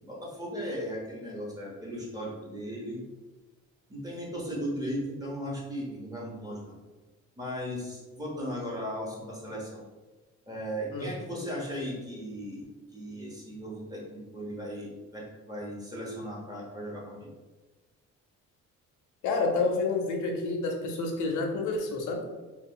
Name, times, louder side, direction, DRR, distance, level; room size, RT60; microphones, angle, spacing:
voice 1, 0.0-3.0 3.9-6.7 7.4-9.8 10.5-12.7 12.9-17.3, equal, 10° right, -5 dB, 1.1 m, -37 dB
voice 2, 19.2-22.2, left 3 dB, 85° left, 2 dB, 0.6 m, -29 dB
2.3 x 2.3 x 3.7 m, 1.2 s
cardioid pair, 90°, 30 cm